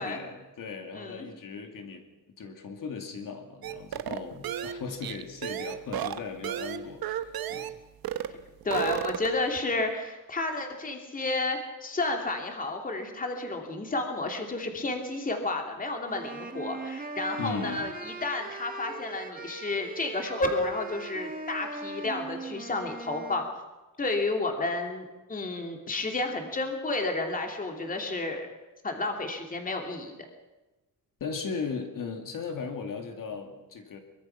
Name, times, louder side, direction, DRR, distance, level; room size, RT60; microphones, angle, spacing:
voice 1, 0.0-2.0 2.4-7.8 17.4-17.9 31.2-34.0, left 5 dB, 65° left, 4 dB, 2.6 m, -37 dB
voice 2, 0.9-1.3 8.6-23.4 24.0-28.5 28.8-30.1, left 2 dB, 25° left, 3 dB, 2.6 m, -31 dB
sound 1, 3.6-7.8 8.0-8.4 8.6-9.5, right 10 dB, 80° right, 1.1 m, -33 dB
sound 2, 16.0-23.5, right 3 dB, 25° right, 1.6 m, -40 dB
23.5 x 22.0 x 5.9 m, 1.1 s
wide cardioid pair, 170°, 36 cm